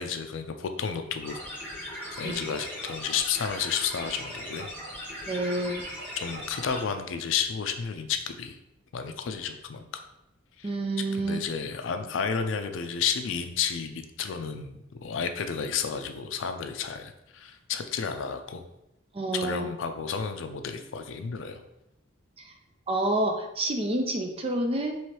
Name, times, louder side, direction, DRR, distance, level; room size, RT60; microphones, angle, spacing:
voice 1, 0.0-1.4 2.1-4.7 6.2-8.6 8.9-9.9 10.6-10.7 11.2-18.7 19.3-21.6, left 6 dB, 70° left, 7 dB, 0.4 m, -32 dB
sound 1, 1.2-6.8, equal, 10° left, 1.5 m, -39 dB
voice 2, 5.3-5.8 10.6-11.4 19.1-19.7 22.4-22.5 22.9-25.0, right 1 dB, 30° right, 3 dB, 0.4 m, -28 dB
4.6 x 3.1 x 3.0 m, 0.88 s
head